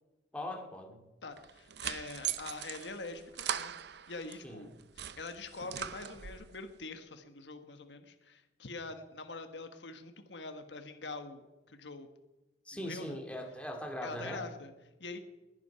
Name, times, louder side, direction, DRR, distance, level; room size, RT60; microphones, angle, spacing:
voice 1, 0.3-1.0 4.4-4.7 12.7-14.4, left 1 dB, 5° left, 2 dB, 2.2 m, -40 dB
voice 2, 1.2-3.7 4.1-11.4 11.7-12.1 12.8-13.2 14.0-14.7 15.0-15.2, left 3 dB, 75° left, 7 dB, 1.3 m, -44 dB
sound 1, 1.4-4.4 4.8-6.5, right 9 dB, 70° right, 0.7 m, -40 dB
21.0 x 10.5 x 5.7 m, 1.1 s
head